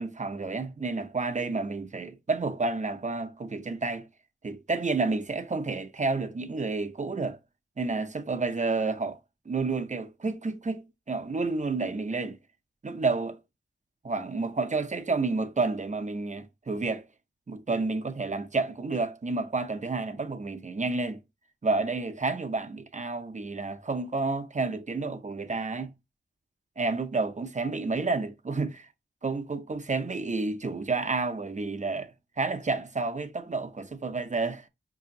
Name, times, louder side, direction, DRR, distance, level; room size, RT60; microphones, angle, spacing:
voice 1, 0.0-4.1 4.4-7.4 7.8-9.2 9.5-12.4 12.8-13.4 14.0-17.1 17.5-21.2 21.6-25.9 26.8-28.9 29.2-34.7, right 3 dB, 35° right, 0.6 m, -30 dB
4.8 x 2.7 x 2.6 m
wide cardioid pair, 75°, 21 cm